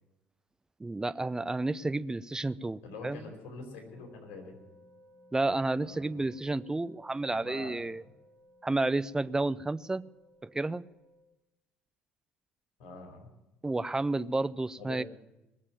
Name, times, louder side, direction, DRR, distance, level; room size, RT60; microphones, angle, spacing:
voice 1, 0.8-3.2 5.3-8.0 8.6-10.0 10.4-10.8 13.6-15.0, right 2 dB, 10° right, 15 dB, 0.5 m, -31 dB
voice 2, 2.8-4.6 5.8-6.1 7.4-7.7 12.8-13.3 14.8-15.0, left 3 dB, 55° left, 0 dB, 4.6 m, -45 dB
sound 1, 3.9-11.2, equal, 25° right, 4.3 m, -60 dB
20.0 x 7.4 x 9.3 m, 0.96 s
figure-of-eight pair, 55°, 6 cm